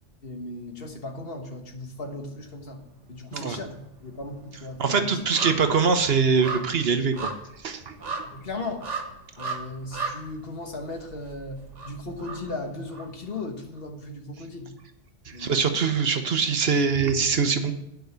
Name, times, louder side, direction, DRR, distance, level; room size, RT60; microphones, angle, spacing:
voice 1, 0.2-2.8 3.1-5.2 8.3-8.8 9.4-14.8 15.3-15.6, left 2 dB, 55° left, 4 dB, 1.4 m, -37 dB
sound 1, 2.4-3.2 3.4-13.4 13.8-13.9, right 4 dB, 90° right, 1.7 m, -37 dB
voice 2, 4.8-7.3 7.6-7.9 15.4-17.7, right 5 dB, 60° right, 8 dB, 1.0 m, -23 dB
9.4 x 5.2 x 8.0 m, 0.83 s
omnidirectional pair, 1.2 m